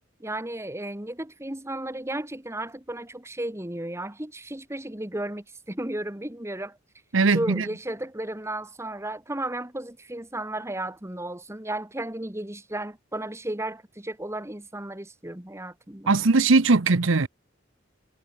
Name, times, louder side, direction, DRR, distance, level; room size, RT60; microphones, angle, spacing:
voice 1, 0.2-6.8 7.3-16.1, right 1 dB, 15° right, 1.6 m, -34 dB
voice 2, 7.1-7.6 16.1-17.3, right 3 dB, 70° right, 0.9 m, -20 dB
head